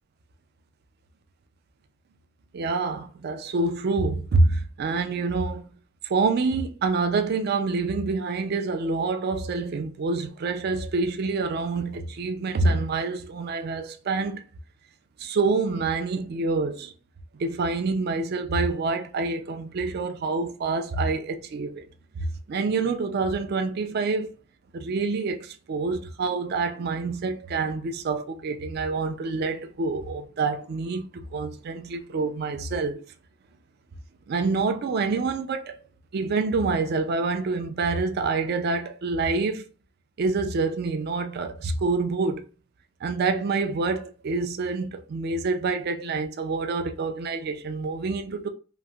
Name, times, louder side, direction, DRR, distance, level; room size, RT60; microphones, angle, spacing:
voice 1, 2.5-5.6 6.0-14.4 15.2-16.9 17.3-21.8 22.2-24.3 24.7-33.0 34.3-35.8 36.1-39.6 40.2-42.4 43.0-48.5, right 3 dB, 55° right, 0.4 m, -27 dB
3.0 x 2.5 x 2.3 m
head